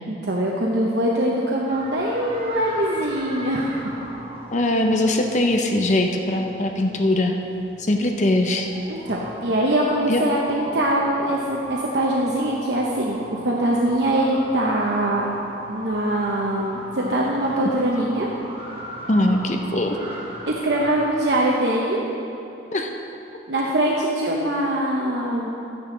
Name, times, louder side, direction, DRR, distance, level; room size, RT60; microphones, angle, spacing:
voice 1, 0.1-3.8 8.9-15.3 15.7-18.3 20.5-22.0 23.5-25.5, right 1 dB, 65° right, -3 dB, 0.9 m, -23 dB
sound 1, 1.7-21.4, right 1 dB, 30° right, 1.1 m, -39 dB
voice 2, 4.5-7.4 7.8-8.7 10.1-10.2 19.1-20.0 22.7-22.9, left 1 dB, 40° left, 4 dB, 0.6 m, -21 dB
12.0 x 9.5 x 3.8 m, 2.9 s
head